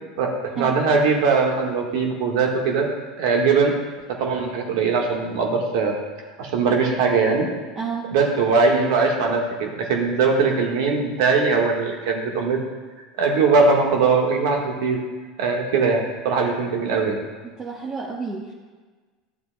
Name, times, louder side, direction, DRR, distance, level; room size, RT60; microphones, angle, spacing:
voice 1, 0.2-2.9 3.2-3.7 4.1-5.9 6.4-7.5 8.1-12.6 13.2-15.0 15.4-17.2, right 4 dB, 65° right, 1 dB, 1.5 m, -20 dB
voice 2, 7.8-8.1 17.6-18.5, right 5 dB, 30° right, -4 dB, 1.2 m, -30 dB
12.5 x 7.4 x 2.2 m, 1.4 s
hypercardioid pair, 80°, 2 cm